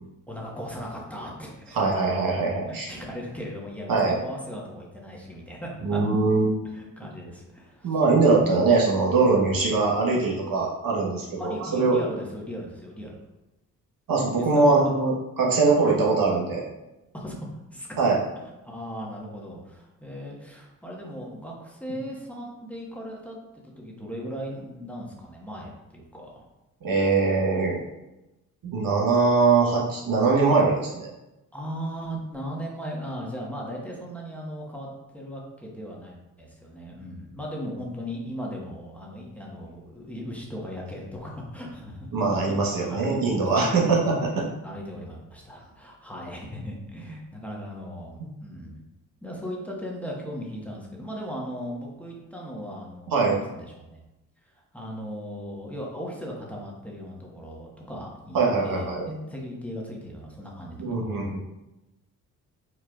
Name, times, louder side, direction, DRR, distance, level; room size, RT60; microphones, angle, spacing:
voice 1, 0.3-1.8 2.7-6.0 6.7-8.0 11.4-13.2 14.4-14.9 15.4-15.7 17.1-17.9 18.6-26.4 31.5-42.1 42.8-44.0 44.6-48.8 49.2-54.0 54.4-61.4, equal, 5° left, -3 dB, 1.4 m, -37 dB
voice 2, 1.7-2.9 3.9-4.2 5.8-6.6 7.8-12.0 14.1-16.6 18.0-18.2 26.8-27.8 28.6-31.1 42.1-44.1 53.1-53.3 58.3-59.0 60.8-61.4, right 4 dB, 50° right, -3 dB, 1.3 m, -22 dB
4.6 x 4.4 x 2.4 m, 0.97 s
hypercardioid pair, 45°, 43 cm